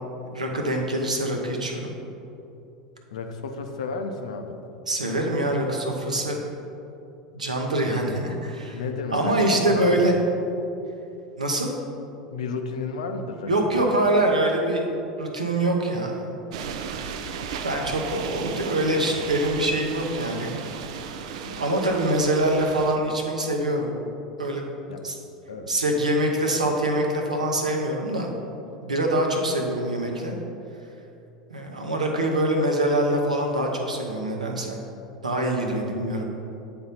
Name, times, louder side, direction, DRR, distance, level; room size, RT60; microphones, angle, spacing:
voice 1, 0.2-1.9 4.9-6.4 7.3-8.8 9.1-10.1 11.4-11.7 13.5-14.9 15.2-16.2 17.6-20.5 21.4-23.9 24.4-24.6 25.0-25.2 25.7-28.3 28.8-30.4 31.5-34.8 35.2-36.3, right 1 dB, 85° right, 1 dB, 0.8 m, -24 dB
voice 2, 3.1-4.6 8.7-10.1 12.3-13.5 13.8-13.9 24.9-25.0 25.5-25.7 35.7-35.9 36.4-36.5, left 4 dB, 70° left, 6 dB, 0.6 m, -32 dB
sound 1, 16.5-23.0, right 6 dB, 60° right, 0.4 m, -35 dB
8.8 x 3.7 x 4.3 m, 2.8 s
figure-of-eight pair, 80°, 4 cm